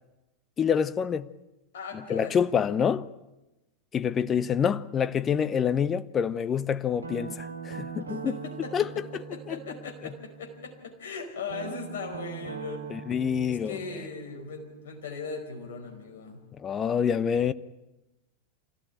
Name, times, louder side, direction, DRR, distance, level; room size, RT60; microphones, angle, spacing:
voice 1, 0.6-1.3 1.9-3.1 3.9-8.3 8.7-8.9 9.5-9.6 12.9-13.8 16.6-17.5, left 7 dB, 25° left, 0.8 m, -26 dB
voice 2, 1.7-2.4 8.1-12.9 13.5-16.4, left 4 dB, 65° left, 5.1 m, -39 dB
Guitar, 7.0-10.8 11.5-16.2, right 6 dB, 75° right, 1.9 m, -42 dB
25.5 x 17.0 x 9.0 m
figure-of-eight pair, 85°, 0 cm